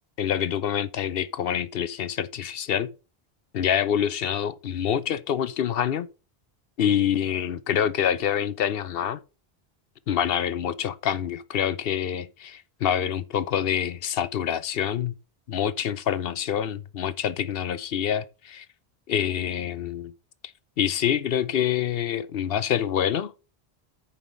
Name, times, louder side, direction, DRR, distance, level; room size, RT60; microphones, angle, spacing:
voice 1, 0.2-2.9 3.5-6.1 6.8-9.2 10.1-15.1 15.5-18.6 19.1-20.1 20.8-23.3, left 9 dB, 65° left, 0.8 m, -26 dB
9.3 x 5.2 x 5.1 m
omnidirectional pair, 1.1 m